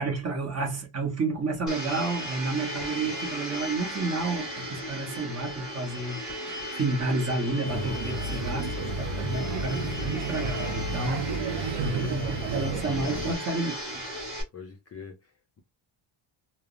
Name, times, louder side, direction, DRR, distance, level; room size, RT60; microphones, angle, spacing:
voice 1, 0.0-6.2 6.5-8.9 9.2-14.0, right 3 dB, 30° right, 0.9 m, -30 dB
Domestic sounds home sounds, 1.7-14.4, equal, ahead, 1.3 m, -36 dB
Male speech man speaking / Child speech kid speaking / Chatter, 7.6-13.3, right 3 dB, 65° right, 0.6 m, -32 dB
voice 2, 8.3-8.7 9.3-9.6 11.4-12.1 12.4-12.8 13.0-13.3 14.5-15.6, left 5 dB, 30° left, 0.4 m, -45 dB
3.2 x 2.0 x 2.4 m
cardioid pair, 175°, 49 cm